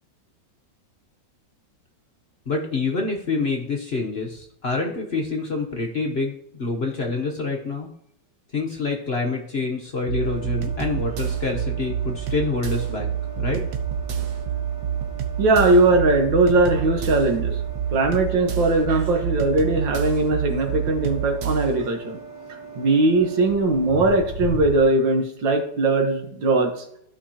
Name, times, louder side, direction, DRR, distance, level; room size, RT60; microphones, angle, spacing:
voice 1, 2.5-7.9 8.5-13.1 13.4-13.6, left 3 dB, 45° left, 1 dB, 0.9 m, -27 dB
sound 1, 10.1-21.8, right 9 dB, 65° right, 1.3 m, -28 dB
sound 2, 10.2-24.8, right 2 dB, 15° right, 1.7 m, -37 dB
voice 2, 15.4-17.6 17.9-22.2 22.8-26.8, right 2 dB, 80° right, 4 dB, 2.0 m, -20 dB
13.5 x 5.4 x 2.9 m, 0.73 s
omnidirectional pair, 2.0 m